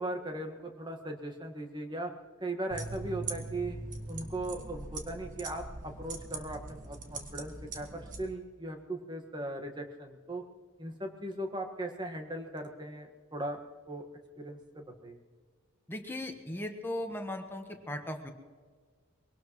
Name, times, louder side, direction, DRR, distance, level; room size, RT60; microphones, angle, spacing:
voice 1, 0.0-2.1 2.4-3.8 4.1-10.4 10.8-13.6 13.9-14.0 14.4-15.2, right 1 dB, 20° right, 5 dB, 1.5 m, -38 dB
sound 1, 2.7-8.2, right 3 dB, 40° right, 1.4 m, -41 dB
voice 2, 15.9-18.3, left 1 dB, 10° left, 4 dB, 1.2 m, -37 dB
23.0 x 18.0 x 3.1 m, 1.5 s
head